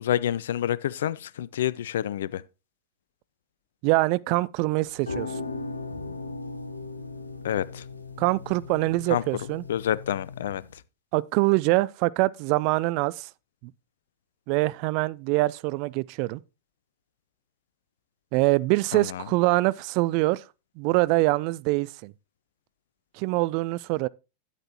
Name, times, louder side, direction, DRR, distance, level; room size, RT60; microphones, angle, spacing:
voice 1, 0.0-2.4 7.4-7.8 9.1-9.2 9.7-10.6 18.9-19.2, left 11 dB, 60° left, 0.4 m, -28 dB
voice 2, 3.8-5.4 8.2-9.6 11.1-13.3 13.6-13.7 14.5-16.4 18.3-20.4 20.8-22.1 23.1-24.1, right 21 dB, 45° right, 0.3 m, -24 dB
sound 1, 4.8-10.8, left 3 dB, 80° left, 1.0 m, -38 dB
10.0 x 8.3 x 2.9 m
figure-of-eight pair, 90°, 0 cm